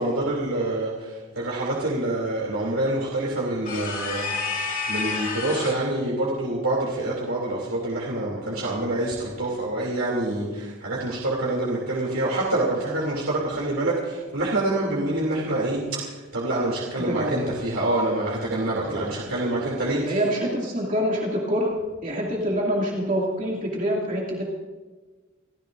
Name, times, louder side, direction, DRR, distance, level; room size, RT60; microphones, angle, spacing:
voice 1, 0.0-20.2, right 2 dB, 80° right, -4 dB, 3.1 m, -26 dB
sound 1, 3.7-5.9, left 4 dB, 45° left, 2.5 m, -29 dB
voice 2, 17.1-17.5 20.1-21.7 22.0-24.4, equal, 40° right, -3 dB, 2.7 m, -25 dB
28.5 x 15.0 x 2.7 m, 1.3 s
head